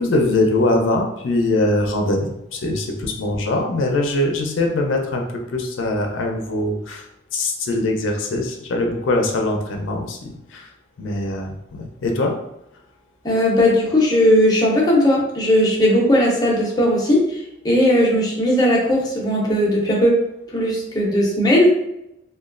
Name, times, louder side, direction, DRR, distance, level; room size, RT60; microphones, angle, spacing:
voice 1, 0.0-7.1 7.3-10.7 11.0-12.4, left 2 dB, 75° left, 3 dB, 0.5 m, -22 dB
voice 2, 13.2-17.2 17.6-20.2 20.5-21.7, equal, 20° left, -3 dB, 0.6 m, -17 dB
2.9 x 2.2 x 2.4 m, 0.82 s
head